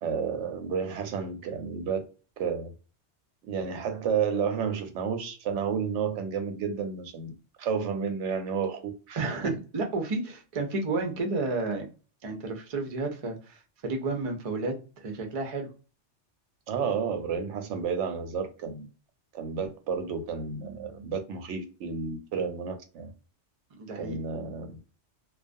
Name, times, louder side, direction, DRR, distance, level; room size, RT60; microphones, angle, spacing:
voice 1, 0.0-2.0 2.4-2.7 3.5-9.6 16.7-18.9 19.3-23.1 23.9-24.8, right 6 dB, 90° right, 0.9 m, -31 dB
voice 2, 9.2-11.9 12.2-15.7 23.7-24.2, right 3 dB, 45° right, 0.5 m, -31 dB
2.3 x 2.2 x 2.5 m
omnidirectional pair, 1.2 m